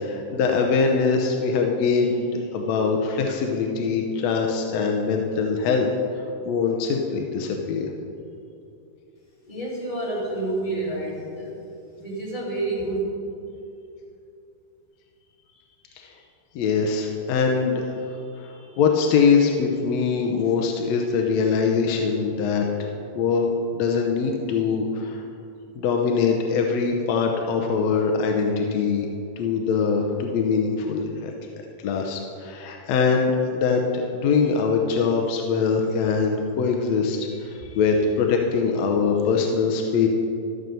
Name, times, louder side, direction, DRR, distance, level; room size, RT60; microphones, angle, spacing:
voice 1, 0.0-5.9 6.4-7.9 16.0-16.1 16.5-22.9 23.1-23.5 23.7-25.2 25.8-29.1 29.4-31.3 31.8-40.1, left 5 dB, 70° left, 2 dB, 1.6 m, -23 dB
voice 2, 9.4-13.0, right 2 dB, 15° left, -6 dB, 2.3 m, -29 dB
13.0 x 6.7 x 6.8 m, 2.7 s
omnidirectional pair, 4.0 m